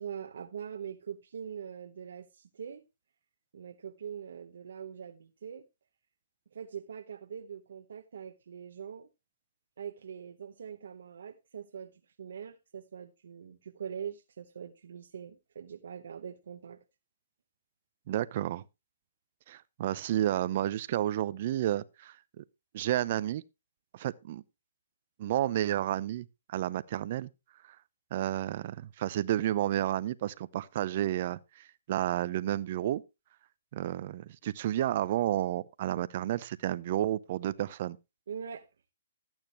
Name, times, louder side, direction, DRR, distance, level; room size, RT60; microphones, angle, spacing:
voice 1, 0.0-2.8 3.5-5.7 6.5-9.1 9.8-16.8 38.3-38.6, right 8 dB, 70° right, 1.0 m, -43 dB
voice 2, 18.1-18.6 19.5-22.4 22.7-23.4 23.9-24.4 25.2-27.3 28.1-33.0 33.7-38.0, right 12 dB, 45° right, 0.6 m, -31 dB
14.0 x 8.9 x 3.0 m
hypercardioid pair, 150°, 0 cm